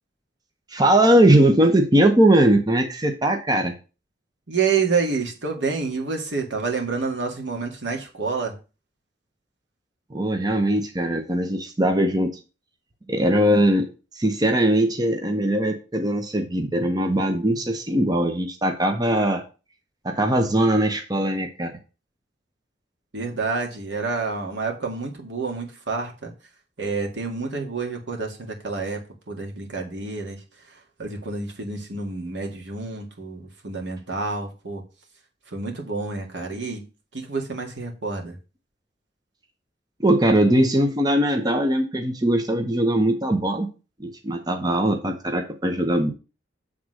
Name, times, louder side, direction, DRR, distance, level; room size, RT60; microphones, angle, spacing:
voice 1, 0.7-3.7 10.1-12.3 13.1-13.9 14.1-19.4 20.0-21.7 40.0-43.7 44.0-46.1, right 1 dB, 20° right, 5 dB, 0.8 m, -20 dB
voice 2, 4.5-8.5 23.1-26.3 26.8-29.0 29.3-34.8 35.5-36.8 37.1-38.4, right 4 dB, 80° right, 1 dB, 1.9 m, -28 dB
7.9 x 3.7 x 6.3 m, 0.33 s
head